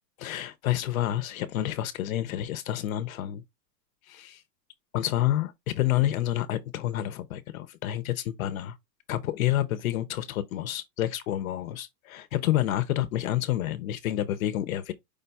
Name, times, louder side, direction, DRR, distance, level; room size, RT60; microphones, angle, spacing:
voice 1, 0.2-3.4 4.1-4.4 4.9-8.7 9.1-14.9, left 13 dB, 60° left, 0.7 m, -29 dB
5.1 x 2.2 x 4.0 m
supercardioid pair, 165°, 48 cm